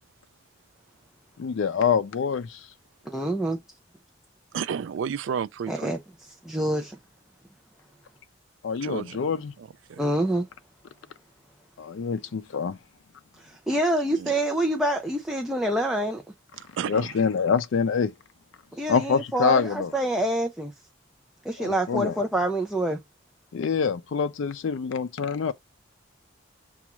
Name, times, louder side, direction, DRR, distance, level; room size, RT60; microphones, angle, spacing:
voice 1, 1.4-2.7 8.6-9.5 11.8-12.8 16.9-18.1 18.9-19.9 21.6-22.1 23.5-25.5, left 6 dB, 75° left, 0.4 m, -25 dB
voice 2, 3.0-3.6 5.7-6.0 6.5-7.0 10.0-10.5 13.4-16.2 18.7-20.7 21.4-23.0, right 1 dB, ahead, 0.4 m, -26 dB
voice 3, 4.5-5.9 8.8-9.2 9.6-10.0 14.2-14.3 16.6-17.2, right 7 dB, 70° right, 0.3 m, -32 dB
7.0 x 2.4 x 2.9 m
head